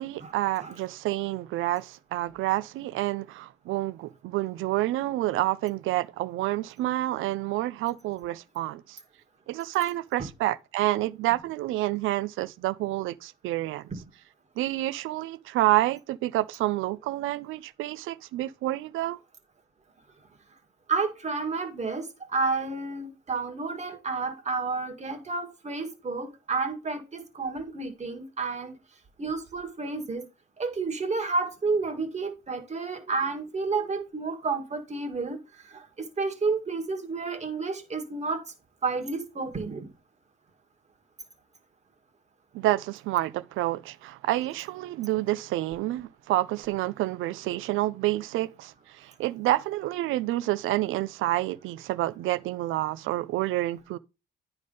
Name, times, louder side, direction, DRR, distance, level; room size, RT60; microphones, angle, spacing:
voice 1, 0.0-9.0 9.5-13.9 14.6-19.2 42.5-54.0, right 16 dB, 85° right, 0.5 m, -28 dB
voice 2, 20.9-28.8 29.2-30.3 30.6-35.4 35.6-38.4 38.8-39.9, right 4 dB, 35° right, 1.7 m, -30 dB
9.4 x 3.5 x 5.3 m
cardioid pair, 90°, 20 cm